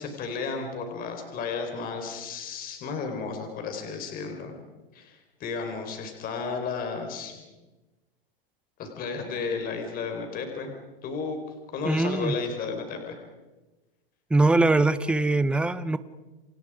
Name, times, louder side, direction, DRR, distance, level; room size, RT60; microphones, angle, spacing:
voice 1, 0.0-4.6 4.9-7.4 8.8-10.7 11.0-11.4 11.7-13.2, left 5 dB, 30° left, 5 dB, 4.5 m, -33 dB
voice 2, 11.8-12.3 14.3-16.0, right 2 dB, 5° right, 14 dB, 0.7 m, -22 dB
29.0 x 27.0 x 5.0 m, 1.1 s
supercardioid pair, 145°, 30 cm